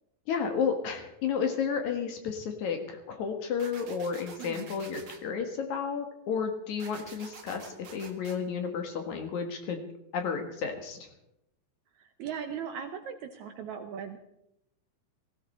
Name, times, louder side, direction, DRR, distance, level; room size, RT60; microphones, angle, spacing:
voice 1, 0.3-9.9 10.1-11.1, left 6 dB, 60° left, 5 dB, 2.6 m, -32 dB
sound 1, 3.6-5.2 6.8-8.4, right 5 dB, 45° right, 1.5 m, -48 dB
voice 2, 12.0-14.2, right 7 dB, 70° right, 7 dB, 1.9 m, -38 dB
17.0 x 16.0 x 4.3 m, 0.83 s
omnidirectional pair, 4.1 m